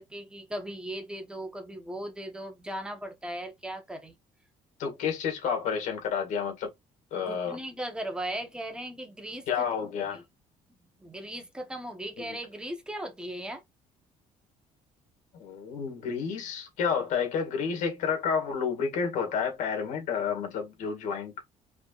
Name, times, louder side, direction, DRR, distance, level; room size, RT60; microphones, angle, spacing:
voice 1, 0.0-4.1 7.2-10.2 11.0-13.6, right 1 dB, 5° right, 1.2 m, -38 dB
voice 2, 4.8-6.7 7.1-7.6 9.5-10.2 12.2-12.4 15.3-21.5, left 6 dB, 70° left, 2.2 m, -30 dB
5.0 x 3.5 x 2.5 m
cardioid pair, 140°, 13 cm